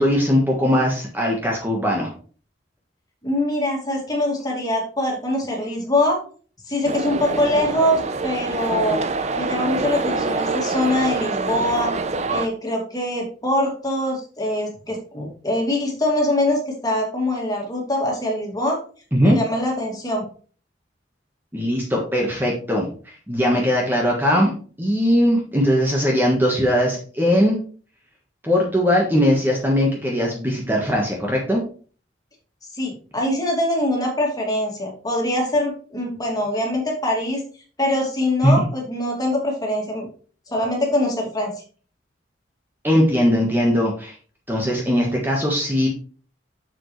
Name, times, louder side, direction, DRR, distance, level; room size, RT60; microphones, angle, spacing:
voice 1, 0.0-2.1 19.1-19.4 21.5-24.5 24.8-27.6 28.4-31.6 38.4-38.5 42.8-44.1 44.5-45.9, equal, 10° right, -1 dB, 1.3 m, -20 dB
voice 2, 3.2-6.2 6.7-9.0 9.4-12.0 12.3-18.8 19.2-20.3 32.7-37.4 37.8-40.1 40.5-41.5, left 1 dB, 20° left, 0 dB, 2.4 m, -23 dB
sound 1, 6.9-12.5, right 3 dB, 40° right, 0.6 m, -25 dB
7.3 x 7.1 x 3.2 m, 0.40 s
head